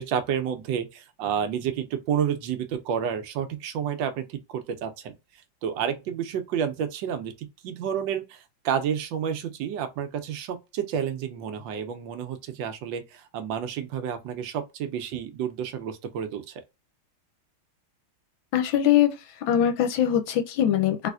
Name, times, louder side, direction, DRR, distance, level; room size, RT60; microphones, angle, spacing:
voice 1, 0.0-5.1 5.6-16.6, right 8 dB, 75° right, 1.3 m, -30 dB
voice 2, 18.5-19.1 19.5-21.1, left 10 dB, 75° left, 1.3 m, -22 dB
3.4 x 3.2 x 2.4 m
omnidirectional pair, 2.3 m